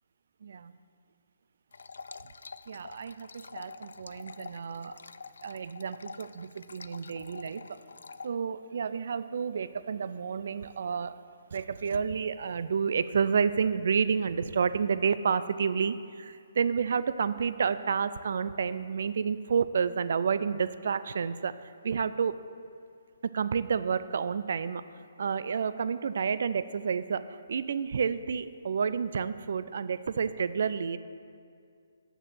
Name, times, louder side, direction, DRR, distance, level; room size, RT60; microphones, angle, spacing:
voice 1, 0.4-0.8 2.7-5.0 5.4-7.8 8.2-11.1 11.5-22.3 23.2-24.8 25.2-31.0, right 6 dB, 60° right, 14 dB, 0.4 m, -30 dB
sound 1, 1.7-8.3, left 4 dB, 75° left, 0.3 m, -47 dB
6.8 x 6.6 x 7.4 m, 2.3 s
hypercardioid pair, 150°, 0 cm